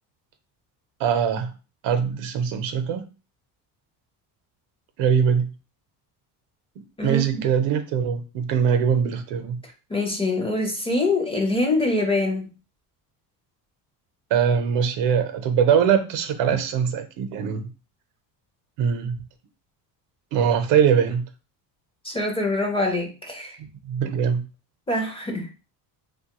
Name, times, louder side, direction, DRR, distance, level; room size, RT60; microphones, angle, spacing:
voice 1, 1.0-1.5 1.8-3.1 5.0-5.5 7.0-9.6 14.3-17.6 18.8-19.2 20.3-21.3 23.8-24.5, right 7 dB, 75° right, 8 dB, 0.7 m, -22 dB
voice 2, 7.0-7.4 9.9-12.5 22.0-23.6 24.9-25.5, left 2 dB, 15° left, 2 dB, 0.5 m, -24 dB
3.0 x 2.2 x 2.9 m, 0.32 s
cardioid pair, 125°, 44 cm